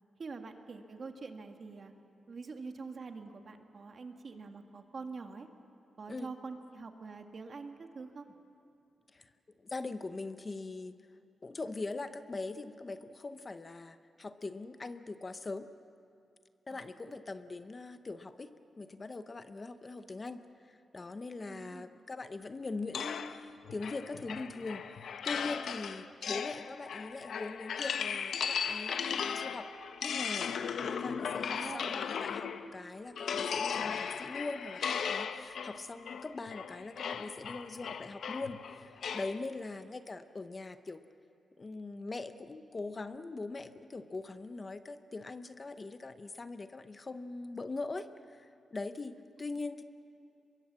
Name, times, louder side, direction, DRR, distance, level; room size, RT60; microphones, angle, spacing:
voice 1, 0.2-1.9 2.3-5.5 6.0-8.3 16.7-16.9 21.5-21.9 31.5-32.1, right 4 dB, 45° right, 5 dB, 1.8 m, -45 dB
voice 2, 9.6-11.0 11.4-15.7 16.7-29.7 30.0-30.5 30.9-41.0 41.6-49.8, left 3 dB, 30° left, 10 dB, 0.8 m, -42 dB
sound 1, 22.9-32.7 33.2-39.4, left 7 dB, 75° left, 0.9 m, -37 dB
24.5 x 22.5 x 7.5 m, 2.5 s
wide cardioid pair, 115°, 0 cm